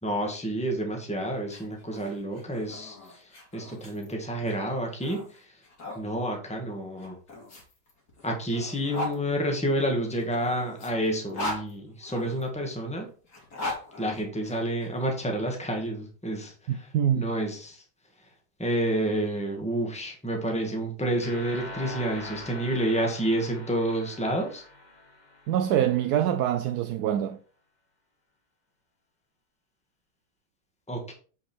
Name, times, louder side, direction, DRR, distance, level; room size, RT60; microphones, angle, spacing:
voice 1, 0.0-3.2 3.5-5.2 5.9-7.1 8.2-13.1 14.0-16.9 17.1-17.8 18.6-24.6 30.9-31.1, right 1 dB, 5° left, 1.7 m, -29 dB
sound 1, 1.4-6.0 7.0-9.2 10.1-12.4 13.2-14.9, left 1 dB, 60° left, 2.8 m, -39 dB
voice 2, 16.7-17.3 25.5-27.4, right 10 dB, 70° right, 1.1 m, -25 dB
sound 2, 21.2-26.1, left 2 dB, 30° left, 1.0 m, -43 dB
7.7 x 5.6 x 4.5 m
omnidirectional pair, 1.9 m